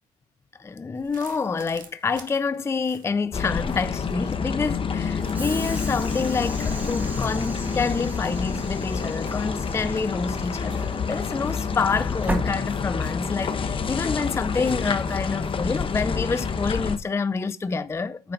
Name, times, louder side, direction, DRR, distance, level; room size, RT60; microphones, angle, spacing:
voice 1, 0.6-18.3, left 4 dB, 15° left, 0.4 m, -27 dB
sound 1, 0.9-15.9, right 7 dB, 55° right, 1.7 m, -51 dB
sound 2, 3.3-17.0, left 5 dB, 30° left, 1.0 m, -28 dB
Train / Sliding door, 5.3-13.3, right 1 dB, 10° right, 1.6 m, -38 dB
9.3 x 4.1 x 5.2 m
cardioid pair, 110°, 17 cm